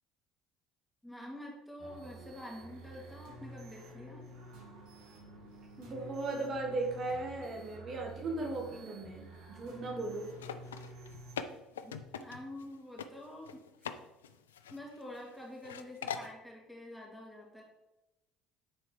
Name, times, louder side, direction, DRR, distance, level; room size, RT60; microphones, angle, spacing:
voice 1, 1.0-4.2 11.8-13.6 14.7-17.6, left 1 dB, 5° left, -2 dB, 2.5 m, -47 dB
sound 1, 1.8-11.3, right 1 dB, 75° right, 1.9 m, -50 dB
voice 2, 5.8-10.3, right 2 dB, 45° right, 0 dB, 1.6 m, -37 dB
sound 2, 10.3-12.7 13.0-13.1 13.4-14.0 14.2-15.3 15.6-16.3, left 7 dB, 90° left, 0.4 m, -41 dB
9.9 x 4.4 x 3.3 m, 0.98 s
hypercardioid pair, 65°, 0 cm